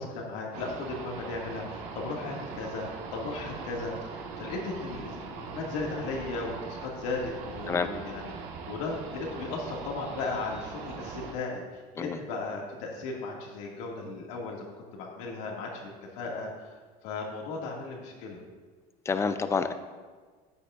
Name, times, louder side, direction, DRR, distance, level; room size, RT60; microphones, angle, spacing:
voice 1, 0.0-2.8 3.1-8.3 8.7-15.9 16.2-16.5 17.0-18.4, left 3 dB, 90° left, -1 dB, 2.1 m, -36 dB
sound 1, 0.5-11.3, right 5 dB, 75° right, 1.6 m, -41 dB
voice 2, 19.1-19.7, left 5 dB, 15° left, 10 dB, 0.5 m, -28 dB
13.5 x 9.4 x 2.5 m, 1.5 s
cardioid pair, 150°, 17 cm